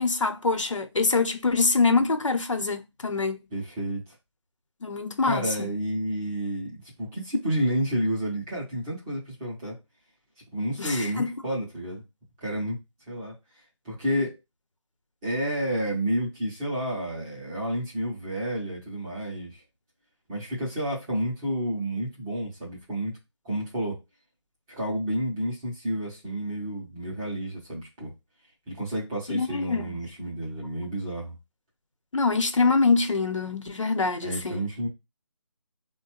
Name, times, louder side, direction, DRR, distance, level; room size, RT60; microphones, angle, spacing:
voice 1, 0.0-3.4 4.8-5.7 10.8-11.3 29.3-30.0 32.1-34.6, left 4 dB, 85° left, 0.9 m, -24 dB
voice 2, 3.5-4.0 5.2-9.8 10.5-12.0 12.4-12.8 13.1-13.3 13.8-14.4 15.2-19.6 20.3-23.1 23.4-24.0 24.7-28.1 28.7-31.3 34.2-34.9, equal, 10° right, 0.5 m, -30 dB
3.8 x 2.2 x 2.9 m
figure-of-eight pair, 165°, 16 cm